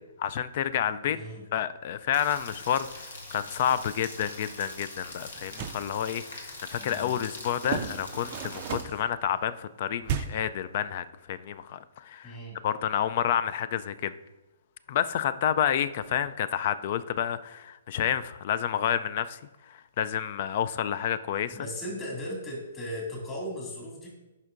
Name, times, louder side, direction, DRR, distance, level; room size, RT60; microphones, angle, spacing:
voice 1, 0.2-1.2 1.5-12.3 12.6-14.1 14.9-19.4 19.7-21.6, left 9 dB, 50° left, 0.4 m, -29 dB
voice 2, 1.1-1.4 6.8-7.1 12.2-12.6 21.5-24.1, equal, 25° left, 2.1 m, -37 dB
Rain, 2.1-8.8, left 2 dB, 75° left, 1.5 m, -43 dB
sound 1, 5.4-5.9 7.6-9.1 10.0-10.5, right 9 dB, 40° right, 0.4 m, -34 dB
10.5 x 5.5 x 2.5 m
hypercardioid pair, 130°, 0 cm